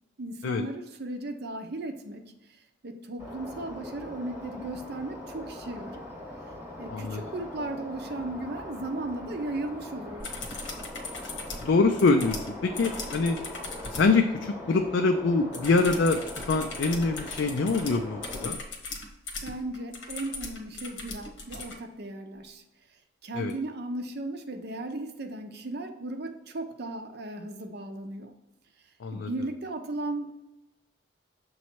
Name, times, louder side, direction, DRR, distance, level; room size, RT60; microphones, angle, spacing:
voice 1, 0.2-6.1 6.8-10.3 19.4-22.6 23.2-28.4 29.1-30.3, right 2 dB, 55° right, 6 dB, 0.7 m, -36 dB
sound 1, 3.2-18.5, left 1 dB, 10° right, 1.1 m, -41 dB
voice 2, 6.9-7.2 11.6-13.4 13.9-18.6 23.3-23.5 29.0-29.3, left 3 dB, 65° left, 5 dB, 0.4 m, -25 dB
sound 2, 10.2-14.2 15.5-21.8 23.5-23.6, left 3 dB, 85° left, 1.1 m, -39 dB
7.1 x 3.1 x 4.4 m, 0.98 s
head